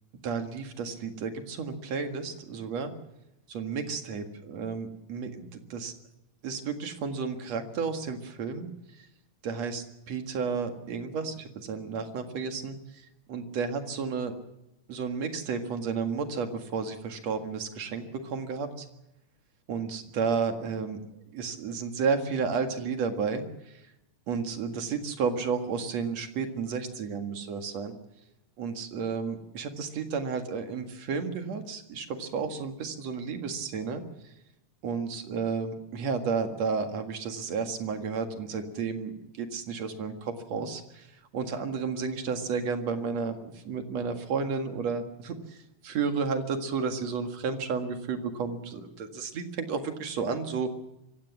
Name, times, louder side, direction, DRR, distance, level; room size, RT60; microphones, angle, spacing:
voice 1, 0.2-2.9 3.5-5.9 6.4-8.7 9.4-12.8 13.3-14.3 14.9-18.9 19.7-21.0 21.3-23.4 23.7-23.8 24.3-27.9 28.6-34.0 34.8-41.1 41.3-45.6 45.8-50.7, right 5 dB, 60° right, 6 dB, 2.9 m, -32 dB
25.0 x 16.5 x 7.4 m, 0.89 s
omnidirectional pair, 3.6 m